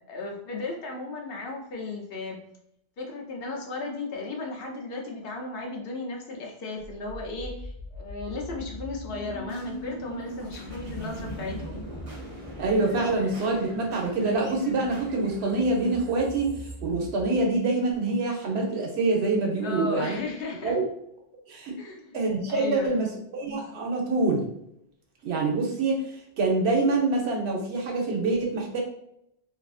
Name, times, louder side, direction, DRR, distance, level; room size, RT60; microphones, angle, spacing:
voice 1, 0.1-2.4 3.0-11.8 19.6-20.8 21.8-22.2 22.5-22.9, left 3 dB, 65° left, 0 dB, 0.8 m, -35 dB
sound 1, 6.8-17.8, equal, 40° right, 0.6 m, -40 dB
voice 2, 12.6-16.5 16.8-20.2 20.6-20.8 21.5-21.7 22.1-24.5 25.2-26.0 26.4-28.8, right 3 dB, 85° right, 0 dB, 1.0 m, -25 dB
2.6 x 2.4 x 2.3 m, 0.75 s
omnidirectional pair, 1.1 m